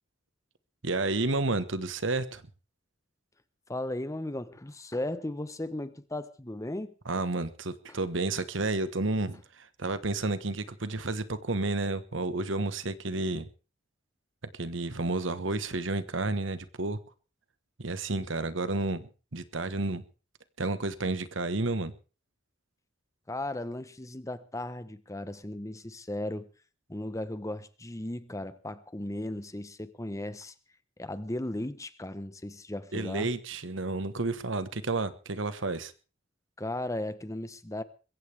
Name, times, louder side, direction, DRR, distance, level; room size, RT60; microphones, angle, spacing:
voice 1, 0.8-2.4 7.0-13.5 14.6-17.0 17.8-20.0 20.6-21.9 32.9-35.9, right 2 dB, 65° right, 1.3 m, -31 dB
voice 2, 3.7-6.9 7.9-8.0 23.3-26.5 26.9-30.5 31.0-33.3 36.6-37.8, left 1 dB, 15° left, 1.0 m, -36 dB
22.0 x 16.0 x 3.5 m
head